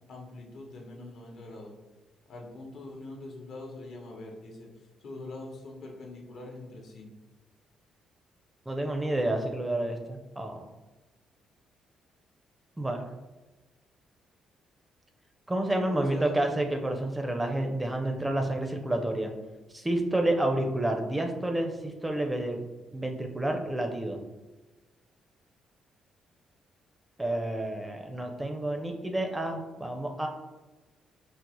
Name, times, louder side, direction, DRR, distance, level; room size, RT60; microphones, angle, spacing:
voice 1, 0.1-1.7 2.3-4.7 5.0-7.1 15.9-16.4, left 2 dB, 65° left, 0 dB, 0.8 m, -43 dB
voice 2, 8.7-10.6 12.8-13.1 15.5-19.3 19.7-22.6 22.9-24.2 27.2-30.3, right 1 dB, 15° right, 4 dB, 0.4 m, -29 dB
3.9 x 2.0 x 2.9 m, 1.1 s
cardioid pair, 90°, 0 cm